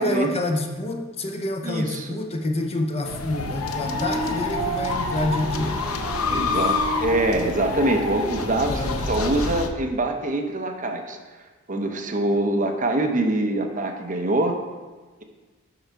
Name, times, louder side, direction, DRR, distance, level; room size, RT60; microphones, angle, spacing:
voice 1, 0.0-5.8 6.2-7.1 8.7-9.0 9.3-9.5, left 1 dB, 30° left, 4 dB, 0.6 m, -28 dB
voice 2, 1.6-2.2 6.3-11.2 11.7-14.6, right 2 dB, 40° right, 3 dB, 0.9 m, -24 dB
sound 1, 3.0-9.7, left 3 dB, 80° left, 0.7 m, -28 dB
sound 2, 3.8-8.1, right 2 dB, 15° right, 2.4 m, -32 dB
7.8 x 5.5 x 4.6 m, 1.3 s
head